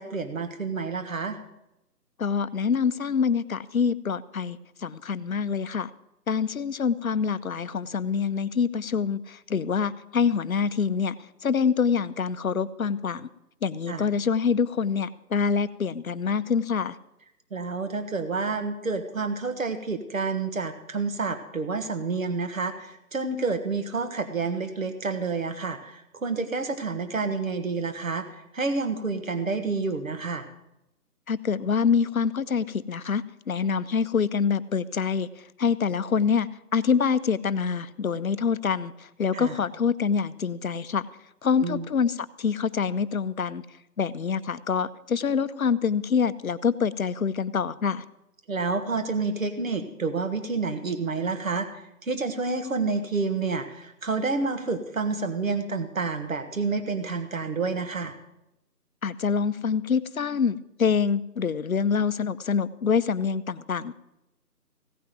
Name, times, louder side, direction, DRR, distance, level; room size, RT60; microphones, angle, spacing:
voice 1, 0.0-1.4 13.9-14.0 17.5-28.3 28.5-30.5 39.3-39.5 41.6-41.8 48.5-51.7 52.0-58.1, right 4 dB, 55° right, 8 dB, 1.7 m, -29 dB
voice 2, 2.2-5.9 6.3-11.1 11.4-13.3 13.6-17.0 31.3-35.3 35.6-41.1 41.4-43.6 44.0-48.0 59.0-63.9, left 6 dB, 60° left, 15 dB, 0.7 m, -26 dB
16.0 x 6.0 x 7.6 m, 0.86 s
figure-of-eight pair, 170°, 47 cm